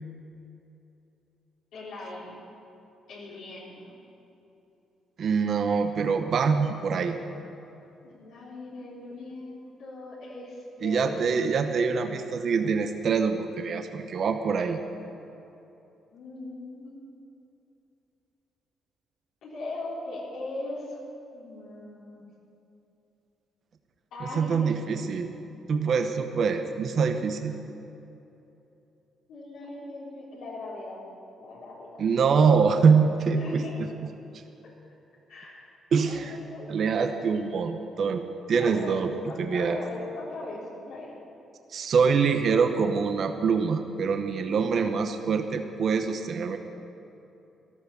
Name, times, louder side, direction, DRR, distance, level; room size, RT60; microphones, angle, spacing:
voice 1, 1.7-2.4 3.1-4.0 8.0-11.2 16.1-16.9 19.4-21.0 21.3-22.3 24.1-24.7 26.2-26.4 29.3-31.0 31.4-32.0 33.4-33.7 34.6-34.7 35.3-35.6 36.0-37.2 38.6-41.1, left 2 dB, 80° left, -6 dB, 3.8 m, -40 dB
voice 2, 5.2-7.2 10.8-14.8 24.4-25.3 25.7-27.5 32.0-33.9 35.9-36.4 36.7-38.2 38.5-39.1 39.4-39.8 41.7-46.6, right 5 dB, 60° right, 7 dB, 1.0 m, -24 dB
13.5 x 13.0 x 6.8 m, 2.9 s
cardioid pair, 90°, 0 cm